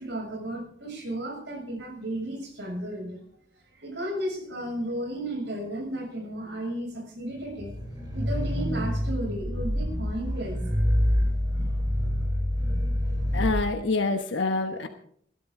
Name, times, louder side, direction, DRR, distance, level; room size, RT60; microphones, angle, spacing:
voice 1, 0.0-3.2 3.7-7.8 8.1-10.6 10.9-11.0, right 1 dB, 65° right, 2 dB, 6.8 m, -34 dB
sound 1, 7.5-13.6, equal, 20° right, 7.0 m, -27 dB
voice 2, 13.3-14.9, left 3 dB, 80° left, 6 dB, 1.1 m, -26 dB
20.5 x 13.0 x 3.7 m, 0.63 s
head